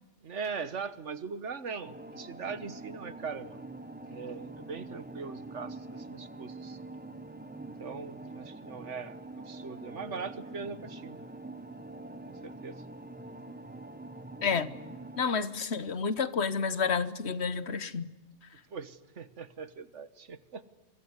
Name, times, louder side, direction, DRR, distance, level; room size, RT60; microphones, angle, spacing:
voice 1, 0.2-3.6 4.1-6.8 7.8-9.2 9.5-11.2 12.3-12.8 18.7-20.6, right 5 dB, 75° right, 14 dB, 1.7 m, -40 dB
sound 1, 1.8-15.2, right 2 dB, 10° right, 1.1 m, -45 dB
voice 2, 14.4-14.7 15.2-18.1, left 5 dB, 65° left, 15 dB, 1.4 m, -30 dB
25.0 x 24.0 x 9.8 m, 1.2 s
omnidirectional pair, 1.2 m